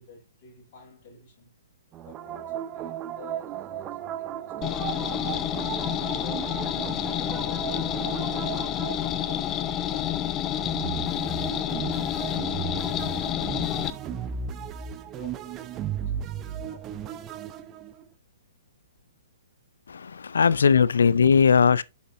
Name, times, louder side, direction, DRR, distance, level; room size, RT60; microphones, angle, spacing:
voice 1, 0.0-1.5 2.0-6.3 7.0-12.6 13.2-14.8 15.1-17.3, left 4 dB, 45° left, 4.9 m, -52 dB
sound 1, 1.9-10.1 10.6-18.0, right 10 dB, 25° right, 0.7 m, -35 dB
sound 2, 4.6-13.9, left 11 dB, 25° left, 0.6 m, -29 dB
voice 2, 19.9-21.8, left 6 dB, 75° left, 0.4 m, -19 dB
7.9 x 6.4 x 2.6 m
hypercardioid pair, 125°, 0 cm